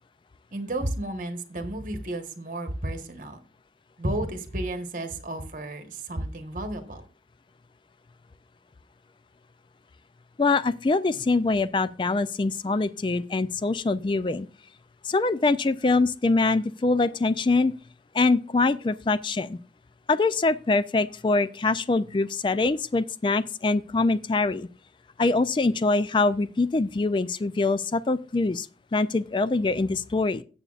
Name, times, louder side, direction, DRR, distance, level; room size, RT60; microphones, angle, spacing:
voice 1, 0.5-3.4 4.0-7.0, right 1 dB, 45° right, 1.2 m, -32 dB
voice 2, 10.4-14.5 15.0-17.7 18.1-19.6 20.1-24.7 25.2-28.7 28.9-30.4, left 3 dB, 25° left, 0.3 m, -24 dB
16.5 x 7.0 x 2.4 m
head